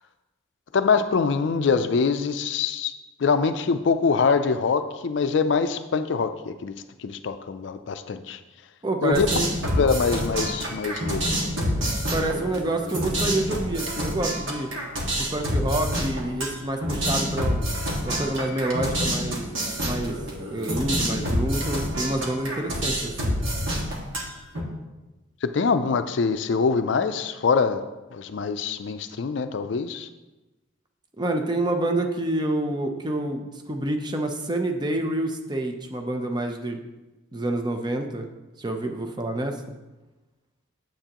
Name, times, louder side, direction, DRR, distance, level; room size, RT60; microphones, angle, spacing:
voice 1, 0.7-2.9 3.2-6.7 7.0-8.4 9.0-9.3 9.7-11.4 25.4-27.8 28.1-30.1, left 5 dB, 60° left, 10 dB, 0.4 m, -24 dB
voice 2, 8.8-9.5 12.1-14.7 15.2-17.6 18.0-19.4 19.8-23.4 31.2-36.8 37.3-38.2 38.6-39.7, right 1 dB, 20° right, 4 dB, 0.6 m, -28 dB
sound 1, 9.1-24.6, equal, 75° right, 1.7 m, -27 dB
8.9 x 7.7 x 2.9 m, 1.1 s
head